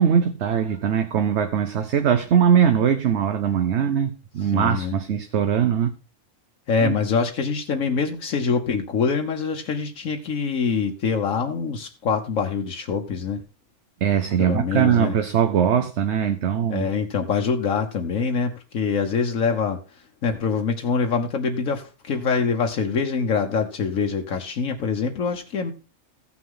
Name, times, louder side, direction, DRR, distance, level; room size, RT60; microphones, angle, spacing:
voice 1, 0.0-5.9 6.8-6.9 14.0-16.9, right 8 dB, 60° right, 1.0 m, -21 dB
voice 2, 4.5-5.0 6.7-13.4 14.4-15.1 16.7-19.8 20.2-25.7, left 5 dB, 80° left, 1.4 m, -24 dB
15.0 x 6.1 x 3.7 m
omnidirectional pair, 1.4 m